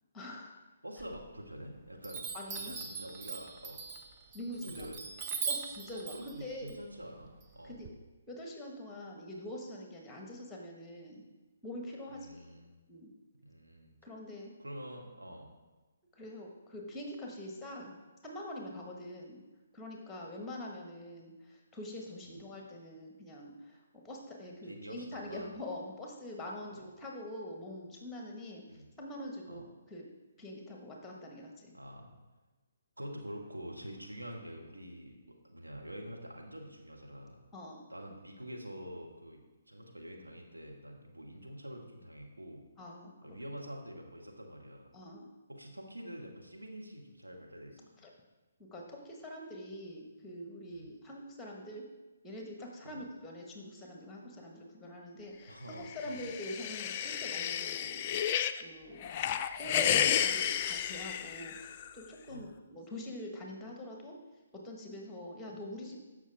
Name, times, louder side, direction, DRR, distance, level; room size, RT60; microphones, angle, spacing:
voice 1, 0.1-0.5 2.3-2.7 4.3-4.9 5.4-6.7 7.6-7.9 8.3-11.2 11.6-12.5 12.9-13.1 14.0-14.5 16.1-18.0 18.2-19.4 19.7-28.6 29.0-30.0 30.4-31.7 37.5-37.8 42.8-43.1 44.9-45.2 48.0-48.1 48.6-51.9 52.2-58.1 58.6-59.1 59.6-64.2 64.5-66.0, left 1 dB, 10° left, 0 dB, 1.5 m, -44 dB
voice 2, 0.8-2.3 2.5-3.8 4.6-5.0 5.9-7.8 12.1-12.8 13.4-13.9 14.6-15.5 22.2-22.4 24.6-25.5 26.7-26.8 28.7-28.9 29.5-29.6 31.7-32.2 33.0-37.4 37.9-39.4 39.7-42.7 43.2-44.9 45.5-47.8 50.7-50.9 52.8-53.0 55.5-56.3 62.3-62.5, equal, 85° right, 1 dB, 1.6 m, -46 dB
Chime, 1.0-1.7 2.0-7.9, right 5 dB, 25° right, 0.8 m, -41 dB
sound 1, 55.9-58.6 59.0-61.9, left 9 dB, 30° left, 0.4 m, -32 dB
14.5 x 5.9 x 3.5 m, 1.2 s
figure-of-eight pair, 135°, 0 cm